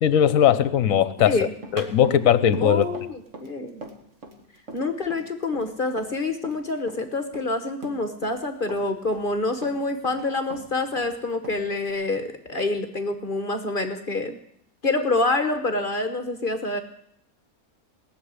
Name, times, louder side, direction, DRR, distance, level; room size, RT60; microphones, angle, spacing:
voice 1, 0.0-1.4 1.7-2.8, left 9 dB, 65° left, 14 dB, 1.2 m, -19 dB
Run, 1.2-6.6 6.9-8.4 8.7-10.2 10.5-11.9, right 2 dB, 55° right, 2.0 m, -41 dB
voice 2, 2.6-3.8 4.7-14.4 14.8-16.8, left 2 dB, 40° left, 7 dB, 1.1 m, -27 dB
19.0 x 6.9 x 9.5 m, 0.70 s
omnidirectional pair, 1.6 m